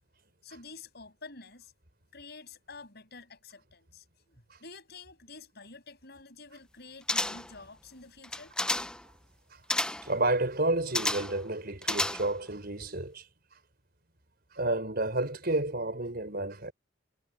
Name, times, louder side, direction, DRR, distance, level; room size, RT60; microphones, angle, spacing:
voice 1, 0.4-1.7 2.1-8.5, left 4 dB, 55° left, 7.0 m, -49 dB
sound 1, 7.1-7.6 8.2-9.0 9.7-10.1 10.9-11.4 11.8-12.5 12.8-12.9, left 1 dB, 5° left, 0.5 m, -31 dB
voice 2, 10.0-13.2 14.5-16.7, right 2 dB, 50° right, 5.2 m, -30 dB
head